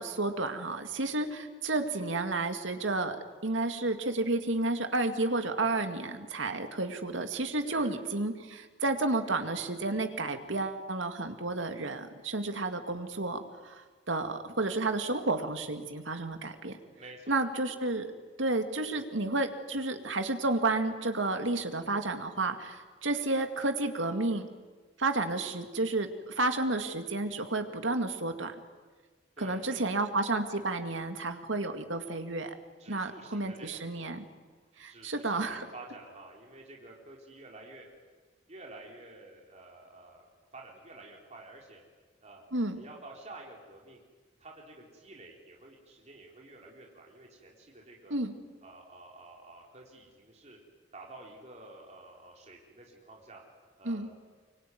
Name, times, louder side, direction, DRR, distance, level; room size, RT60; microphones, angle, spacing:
voice 1, 0.0-16.8 17.3-18.1 18.4-24.5 25.0-28.5 29.4-32.5 32.9-34.2 34.8-35.7 42.5-42.8 48.1-48.3 53.8-54.1, right 2 dB, 85° right, 7 dB, 2.3 m, -31 dB
voice 2, 17.0-17.5 29.4-30.1 32.8-33.9 34.9-37.9 38.5-40.3 40.5-41.8 42.2-42.4 42.8-44.0 44.4-48.2 48.6-50.6 50.9-53.4 53.8-54.1, right 2 dB, 35° right, -1 dB, 4.1 m, -50 dB
24.5 x 24.5 x 9.4 m, 1.4 s
head